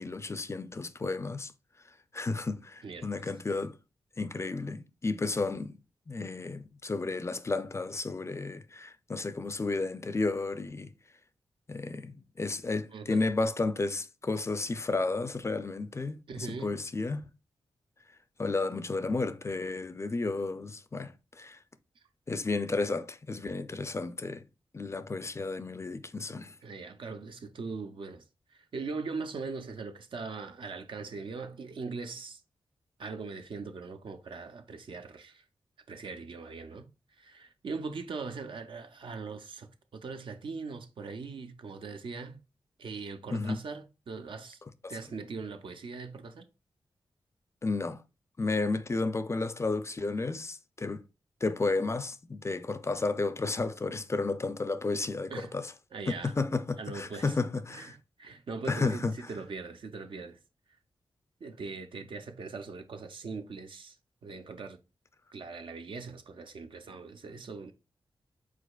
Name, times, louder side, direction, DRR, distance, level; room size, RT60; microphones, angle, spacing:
voice 1, 0.0-1.5 2.1-3.8 4.2-5.8 6.1-10.9 11.7-17.3 18.4-21.6 22.3-24.4 24.7-26.6 43.3-43.6 44.8-44.9 47.6-48.0 48.4-51.0 51.4-55.7 56.1-57.9 58.7-59.1, left 3 dB, 30° left, 0.4 m, -32 dB
voice 2, 12.9-13.2 16.3-16.8 26.6-28.2 28.5-32.4 33.0-35.4 35.9-36.9 37.2-42.4 42.8-44.6 44.9-46.5 55.3-55.5 55.9-56.3 56.8-57.3 57.7-60.4 61.4-64.0 64.2-64.8 65.3-67.7, right 4 dB, 70° right, 0.6 m, -40 dB
4.9 x 3.8 x 2.4 m
cardioid pair, 55°, 9 cm